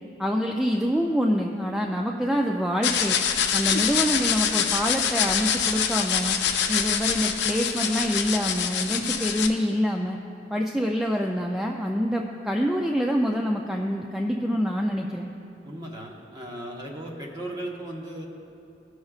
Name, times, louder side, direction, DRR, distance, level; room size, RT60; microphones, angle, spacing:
voice 1, 0.2-3.2 3.5-6.4 6.7-10.2 10.5-15.3, equal, 5° right, 0 dB, 0.3 m, -26 dB
sound 1, 2.8-9.5, left 8 dB, 75° left, 0.6 m, -25 dB
voice 2, 15.6-18.3, right 1 dB, 25° right, -1 dB, 1.0 m, -36 dB
18.0 x 6.3 x 2.4 m, 2.7 s
head